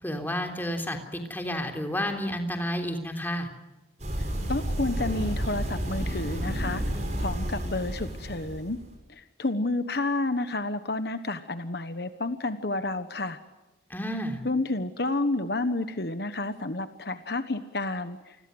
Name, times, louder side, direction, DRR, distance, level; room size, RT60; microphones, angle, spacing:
voice 1, 0.0-3.5 13.9-14.4, equal, 10° left, 4 dB, 3.4 m, -31 dB
sound 1, 4.0-8.9, equal, 35° right, 6.5 m, -31 dB
voice 2, 4.5-6.8 7.2-8.8 9.1-13.4 14.4-18.4, left 2 dB, 55° left, 10 dB, 1.2 m, -30 dB
28.5 x 21.0 x 8.0 m, 1.1 s
head